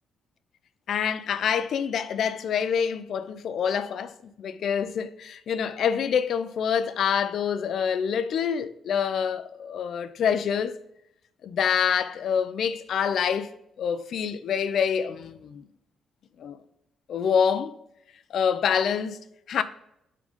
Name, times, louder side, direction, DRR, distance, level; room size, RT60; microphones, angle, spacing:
voice 1, 0.9-10.8 11.4-13.5 13.8-15.6 16.4-16.6 17.1-17.8 18.3-19.2 19.5-19.6, left 7 dB, 60° left, 0.5 m, -26 dB
8.4 x 3.8 x 3.7 m
cardioid pair, 130°, 0 cm